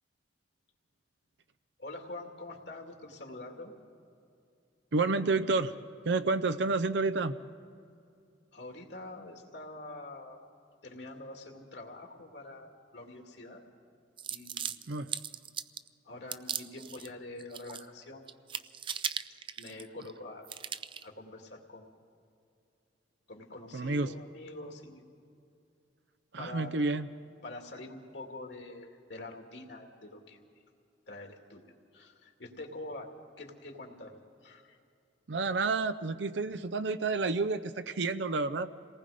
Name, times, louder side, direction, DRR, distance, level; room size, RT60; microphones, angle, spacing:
voice 1, 1.8-3.7 8.5-10.4 10.8-13.6 14.3-14.8 16.0-18.2 19.6-20.5 21.0-21.8 23.3-25.0 26.4-26.7 27.4-30.4 31.1-33.1 33.4-34.1 34.4-34.8, left 2 dB, 65° left, 3 dB, 2.4 m, -45 dB
voice 2, 4.9-5.7 6.0-7.3 14.9-15.1 23.7-24.1 26.3-27.1 35.3-38.7, right 3 dB, 75° right, 12 dB, 0.6 m, -30 dB
sound 1, 14.2-15.9 16.3-17.1 17.4-18.0 18.3-20.1 20.5-21.1, right 8 dB, 30° right, 0.4 m, -38 dB
27.5 x 19.0 x 5.0 m, 2.5 s
head